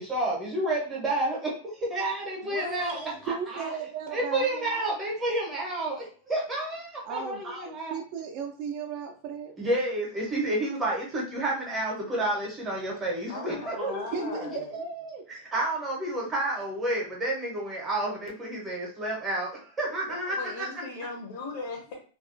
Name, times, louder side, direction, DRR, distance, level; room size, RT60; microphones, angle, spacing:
voice 1, 0.0-1.5 1.9-3.7 4.1-8.0 9.6-14.4 15.3-19.5 19.8-20.6, right 1 dB, 10° right, -3 dB, 0.7 m, -30 dB
voice 2, 2.4-3.1 13.3-14.8 20.1-22.0, left 4 dB, 50° left, 0 dB, 0.6 m, -38 dB
voice 3, 2.9-4.8 7.0-7.4 7.9-9.5 14.1-15.2, right 6 dB, 35° right, 2 dB, 0.3 m, -36 dB
2.3 x 2.1 x 2.5 m, 0.39 s
supercardioid pair, 170°, 0 cm